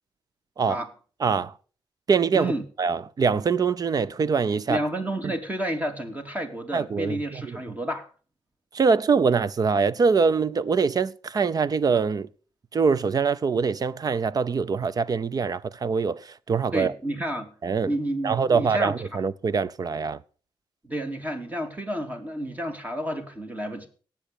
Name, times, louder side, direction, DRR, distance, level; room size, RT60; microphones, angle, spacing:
voice 1, 1.2-1.5 2.1-2.5 2.8-4.8 5.2-5.3 6.7-7.6 8.7-12.3 12.7-16.9 17.6-17.9 18.2-20.2, right 5 dB, 45° right, 0.7 m, -24 dB
voice 2, 4.7-8.1 16.7-17.5 17.9-18.9 20.8-23.9, right 1 dB, 20° right, 2.9 m, -30 dB
17.5 x 7.2 x 6.9 m
cardioid pair, 100°, 9 cm